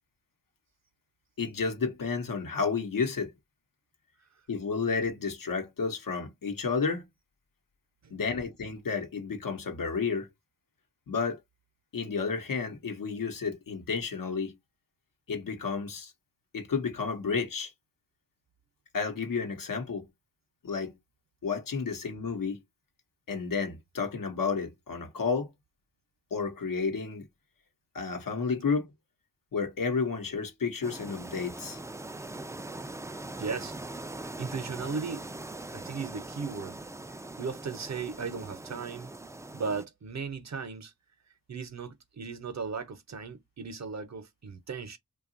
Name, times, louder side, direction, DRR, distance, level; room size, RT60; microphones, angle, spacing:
voice 1, 1.4-3.3 4.5-7.1 8.1-10.3 11.1-11.4 11.9-14.6 15.3-16.1 16.5-17.7 18.9-20.1 20.6-20.9 21.4-22.6 23.3-25.5 26.3-27.3 27.9-28.9 29.5-31.8, left 5 dB, 80° left, 0.9 m, -31 dB
sound 1, 30.8-39.9, right 2 dB, 10° right, 0.3 m, -42 dB
voice 2, 33.4-33.7 34.4-35.3 35.7-36.8 37.4-39.1 39.5-40.9 41.5-45.0, right 5 dB, 55° right, 0.7 m, -36 dB
2.8 x 2.2 x 2.5 m
cardioid pair, 45°, 33 cm